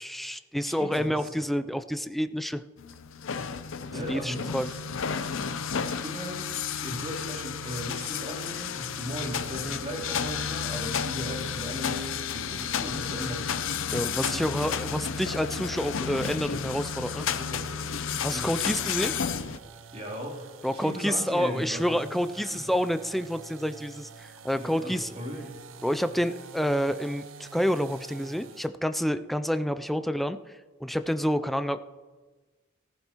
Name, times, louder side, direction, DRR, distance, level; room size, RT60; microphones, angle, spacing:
voice 1, 0.0-2.6 4.1-4.7 9.6-9.8 12.6-12.7 13.9-17.3 18.1-19.1 20.6-25.1 25.8-30.4 30.8-31.8, equal, ahead, 11 dB, 0.4 m, -28 dB
voice 2, 0.6-1.5 3.3-3.5 3.9-4.8 5.1-13.7 14.4-14.6 17.4-17.9 18.2-18.6 19.9-20.5 20.7-22.7 24.6-25.6, equal, 30° right, -3 dB, 3.2 m, -38 dB
sound 1, 2.8-19.6, left 6 dB, 85° left, 0.6 m, -32 dB
sound 2, 18.5-28.8, right 5 dB, 80° right, 0.6 m, -48 dB
15.0 x 14.0 x 3.0 m, 1.3 s
head